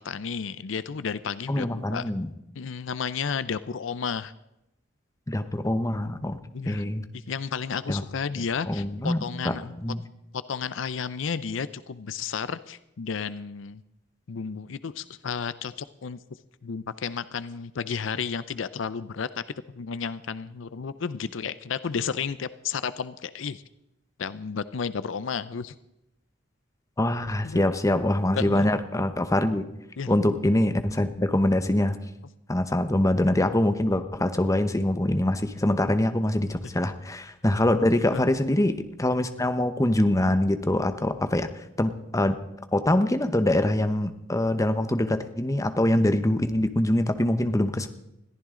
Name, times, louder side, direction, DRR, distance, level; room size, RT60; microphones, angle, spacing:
voice 1, 0.0-2.1 2.5-4.3 6.5-6.8 7.1-9.8 10.3-13.8 14.3-16.2 16.6-19.4 19.7-23.6 24.2-25.7 27.4-27.6 28.4-28.7 30.0-30.1 36.6-36.7 38.1-38.3, left 6 dB, 75° left, 15 dB, 0.5 m, -32 dB
voice 2, 1.5-2.3 5.3-6.4 6.6-7.0 7.9-8.0 8.7-9.5 9.8-10.0 27.0-29.7 30.1-32.0 32.5-41.5 41.8-42.4 42.7-47.9, left 1 dB, 15° left, 9 dB, 0.9 m, -24 dB
21.5 x 14.5 x 3.8 m, 0.86 s
head